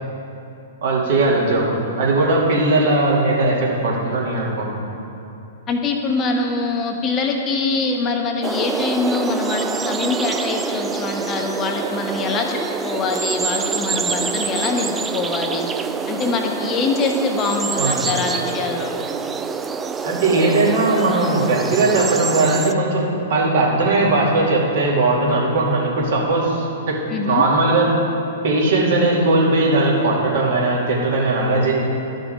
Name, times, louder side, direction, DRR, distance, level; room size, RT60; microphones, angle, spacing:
voice 1, 0.8-4.8 17.8-18.0 20.0-26.9 27.2-27.9 28.4-31.7, right 2 dB, 60° right, -4 dB, 2.4 m, -18 dB
voice 2, 5.7-15.7 16.1-18.9 27.1-27.5, left 4 dB, 30° left, 2 dB, 1.0 m, -23 dB
sound 1, 8.4-22.7, right 5 dB, 15° right, 0.4 m, -26 dB
12.0 x 5.3 x 5.0 m, 2.7 s
hypercardioid pair, 115°, 0 cm